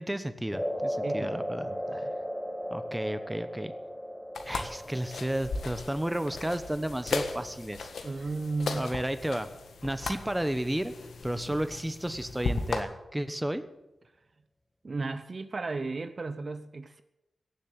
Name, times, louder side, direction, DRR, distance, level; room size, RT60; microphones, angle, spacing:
voice 1, 0.0-1.7 2.7-3.7 4.4-7.9 8.7-9.5 9.8-10.9 11.2-13.6, right 1 dB, 10° right, 11 dB, 1.0 m, -32 dB
sound 1, 0.5-8.9, equal, 10° left, 1.5 m, -37 dB
voice 2, 1.0-2.1 8.0-8.9 14.8-17.0, right 3 dB, 50° right, 10 dB, 0.6 m, -35 dB
sound 2, 4.3-12.8, left 4 dB, 90° left, 1.5 m, -37 dB
16.5 x 7.4 x 8.1 m, 0.98 s
cardioid pair, 70°, 0 cm